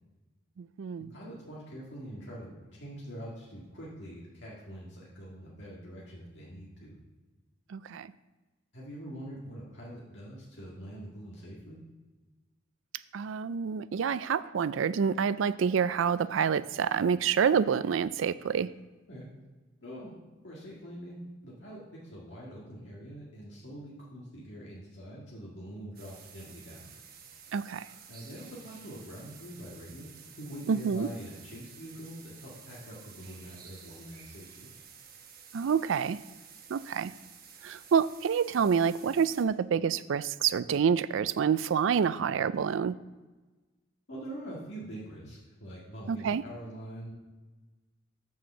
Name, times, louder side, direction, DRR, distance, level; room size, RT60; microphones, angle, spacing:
voice 1, 0.6-1.1 7.7-8.1 13.1-18.7 27.5-27.9 30.7-31.1 35.5-36.2 36.7-37.1 37.6-42.9 46.1-46.4, right 7 dB, 70° right, 16 dB, 0.4 m, -27 dB
voice 2, 1.1-7.0 8.7-11.8 19.1-19.3 19.8-20.2 20.4-21.2 21.4-26.9 28.1-30.1 30.4-34.7 44.1-47.1, equal, 60° left, -6 dB, 1.9 m, -44 dB
sound 1, 25.9-39.4, right 7 dB, 45° right, 1.1 m, -52 dB
7.1 x 6.3 x 6.9 m, 1.2 s
head